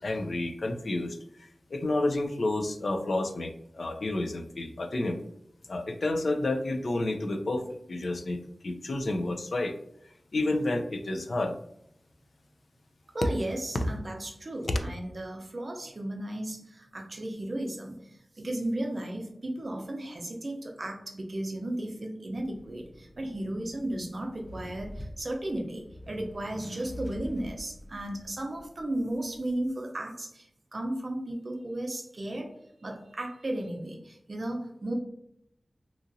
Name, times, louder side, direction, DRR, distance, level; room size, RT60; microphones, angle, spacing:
voice 1, 0.0-5.2 5.7-9.7 10.3-11.5 13.7-13.8 14.7-14.8, left 2 dB, 70° left, 6 dB, 0.3 m, -30 dB
voice 2, 13.1-32.5 32.8-34.9, right 1 dB, 50° right, 2 dB, 0.5 m, -35 dB
Accelerating revving vroom, 22.4-29.7, equal, ahead, 0.4 m, -46 dB
2.8 x 2.4 x 2.6 m, 0.74 s
wide cardioid pair, 90°, 0 cm